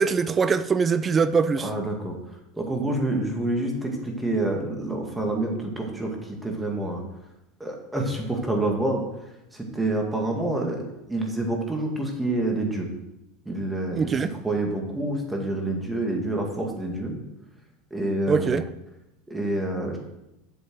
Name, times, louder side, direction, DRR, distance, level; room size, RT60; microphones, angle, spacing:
voice 1, 0.0-1.7 13.9-14.3 18.3-18.6, right 5 dB, 25° right, 0.5 m, -22 dB
voice 2, 1.6-2.2 2.5-7.0 7.6-9.0 9.5-10.8 11.1-12.9 13.5-17.2 17.9-18.6 19.3-20.0, right 2 dB, 10° right, 2.2 m, -27 dB
8.2 x 7.0 x 6.4 m
supercardioid pair, 115°, 0 cm